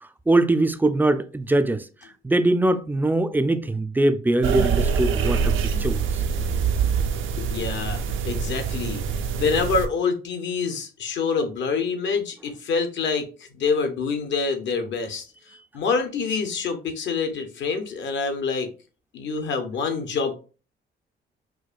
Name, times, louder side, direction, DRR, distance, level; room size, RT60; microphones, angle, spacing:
voice 1, 0.3-1.8 2.2-5.5 5.8-6.0, right 2 dB, 10° right, 0.3 m, -21 dB
sound 1, 4.4-9.9, right 6 dB, 80° right, 0.5 m, -24 dB
voice 2, 7.4-9.0 9.4-13.3 13.5-15.2 15.7-18.7 19.1-20.3, left 5 dB, 65° left, 0.8 m, -26 dB
4.6 x 2.2 x 2.4 m
cardioid pair, 90°, 20 cm